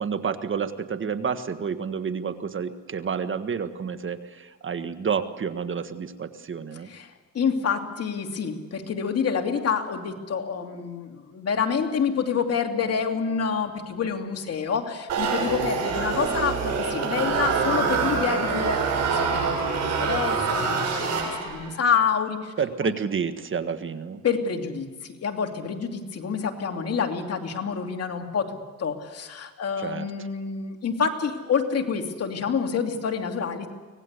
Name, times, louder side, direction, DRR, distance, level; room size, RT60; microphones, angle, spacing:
voice 1, 0.0-6.9 22.6-24.2 29.8-30.1, right 6 dB, 40° right, 10 dB, 1.6 m, -29 dB
voice 2, 6.8-22.5 22.8-22.9 24.2-33.7, left 6 dB, 55° left, 4 dB, 2.8 m, -28 dB
sound 1, 15.1-21.7, right 5 dB, 60° right, 7.5 m, -25 dB
25.0 x 18.5 x 8.3 m, 1.3 s
cardioid pair, 90°, 30 cm